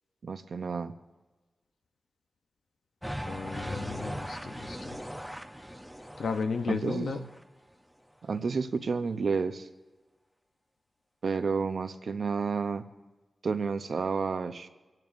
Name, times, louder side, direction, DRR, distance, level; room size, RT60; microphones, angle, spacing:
voice 1, 0.2-0.9 6.7-7.3 8.2-9.7 11.2-12.9 13.4-14.7, right 5 dB, 65° right, 10 dB, 0.7 m, -30 dB
sound 1, 3.0-7.4, equal, ahead, 0.6 m, -39 dB
voice 2, 3.3-5.0 6.2-7.2, left 4 dB, 80° left, 6 dB, 0.6 m, -34 dB
25.0 x 10.5 x 2.6 m, 1.2 s
wide cardioid pair, 105°, 0 cm